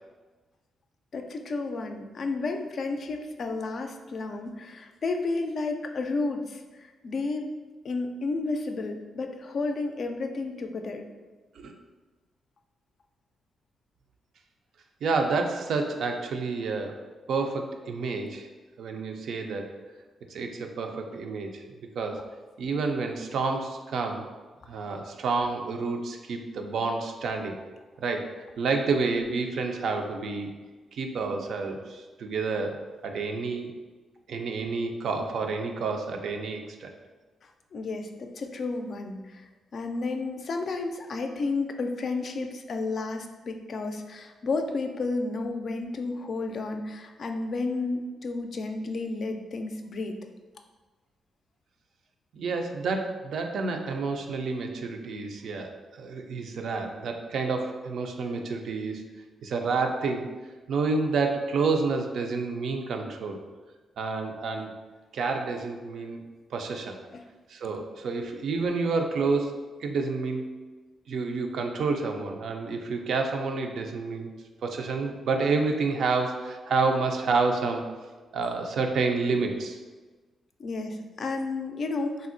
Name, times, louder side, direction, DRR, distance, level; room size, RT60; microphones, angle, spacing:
voice 1, 1.1-7.5 7.8-11.1 37.7-50.1 67.1-67.2 80.6-82.3, left 3 dB, 60° left, 5 dB, 0.3 m, -32 dB
voice 2, 15.0-17.0 17.3-18.5 18.8-19.6 20.3-21.6 22.0-22.2 22.6-24.3 24.7-27.6 28.0-28.3 28.6-30.5 30.9-33.7 34.3-36.9 52.3-59.0 59.4-60.3 60.7-63.4 64.0-64.7 65.1-66.2 66.5-67.0 67.5-70.5 71.1-74.3 74.6-77.9 78.3-79.8, right 4 dB, 70° right, 4 dB, 0.3 m, -29 dB
3.5 x 2.0 x 2.5 m, 1.3 s
supercardioid pair, 60°, 0 cm